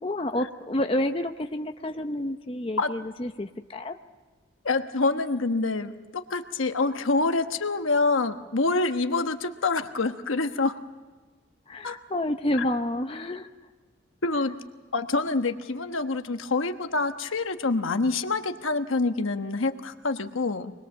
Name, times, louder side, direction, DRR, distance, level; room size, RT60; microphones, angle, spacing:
voice 1, 0.0-4.0 11.7-13.5, left 1 dB, 25° left, 6 dB, 0.7 m, -29 dB
voice 2, 4.6-10.8 11.8-12.0 14.2-14.6 14.9-20.7, left 3 dB, 85° left, 8 dB, 1.2 m, -26 dB
24.5 x 20.5 x 7.3 m, 1.4 s
head